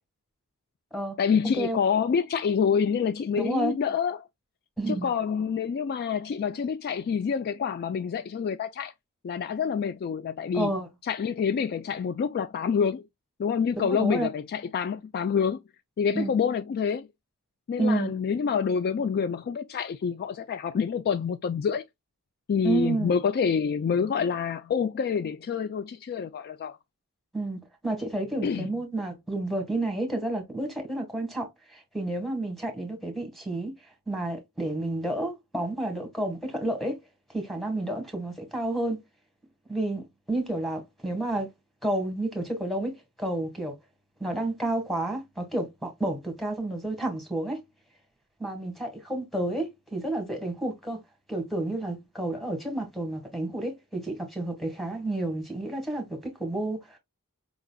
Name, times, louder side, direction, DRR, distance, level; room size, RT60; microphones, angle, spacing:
voice 1, 1.2-4.2 4.9-8.9 9.2-10.7 11.0-13.1 13.4-15.6 16.0-17.1 17.7-21.8 22.5-26.8 28.4-28.7, left 6 dB, 45° left, 0.3 m, -27 dB
voice 2, 3.4-3.7 4.8-5.1 10.5-10.9 13.8-14.3 16.1-16.3 17.8-18.1 22.6-23.1 27.3-33.8 34.1-37.0 37.3-39.0 39.7-41.5 41.8-43.8 44.2-47.6 48.4-51.0 51.3-57.0, right 2 dB, ahead, 1.3 m, -30 dB
4.8 x 3.8 x 2.2 m
head